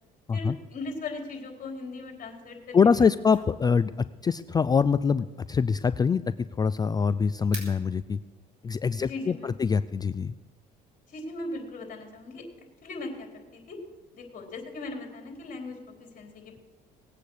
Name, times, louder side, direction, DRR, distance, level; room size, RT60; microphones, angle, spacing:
voice 1, 0.3-3.1 9.0-9.5 11.1-12.5 12.8-13.8 14.1-16.6, left 2 dB, 50° left, 1 dB, 4.1 m, -39 dB
voice 2, 2.7-3.9 4.2-8.2 8.6-10.3, left 5 dB, 25° left, 14 dB, 0.3 m, -24 dB
sound 1, 2.7-8.4, right 3 dB, 45° right, 5.6 m, -50 dB
19.5 x 8.4 x 6.6 m, 1.2 s
cardioid pair, 110°, 17 cm